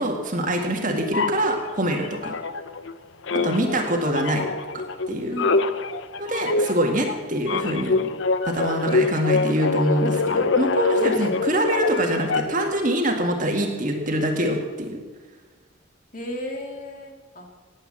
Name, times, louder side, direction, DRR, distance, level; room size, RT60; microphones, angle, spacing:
voice 1, 0.0-2.4 3.4-4.5 5.1-5.3 6.2-8.1 8.5-15.0, right 1 dB, 40° right, 2 dB, 1.9 m, -24 dB
sound 1, 1.1-2.9 3.2-12.7, left 3 dB, 60° left, 0.7 m, -25 dB
voice 2, 3.3-3.8 5.3-5.7 10.9-11.3 16.1-17.5, left 1 dB, 40° left, 2 dB, 2.3 m, -35 dB
18.5 x 8.8 x 7.5 m, 1.4 s
head